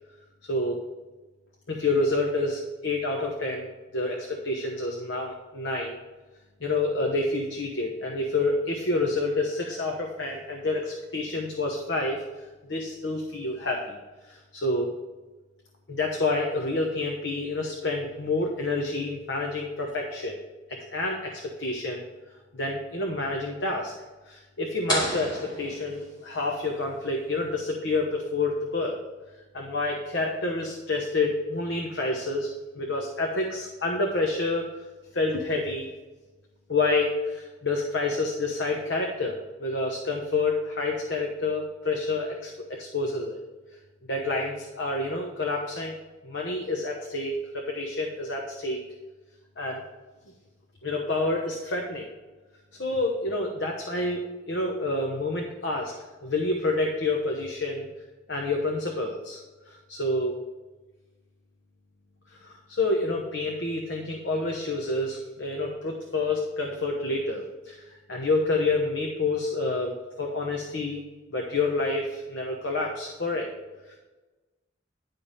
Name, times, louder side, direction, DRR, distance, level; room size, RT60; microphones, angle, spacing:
voice 1, 0.4-0.8 1.7-6.0 6.6-12.2 12.7-14.0 14.3-14.9 15.9-20.4 20.7-22.1 22.5-23.9 24.3-29.0 29.5-32.5 32.7-34.7 35.1-35.9 36.7-43.4 44.1-46.0 46.2-48.8 49.6-49.8 50.8-52.1 52.8-54.2 54.5-55.9 56.2-57.9 58.3-60.3 62.4-67.8 68.1-71.0 71.3-73.5, left 2 dB, 70° left, 0 dB, 1.1 m, -28 dB
sound 1, 24.9-26.6, right 1 dB, 25° left, 2.8 m, -31 dB
10.5 x 5.3 x 4.1 m, 1.2 s
head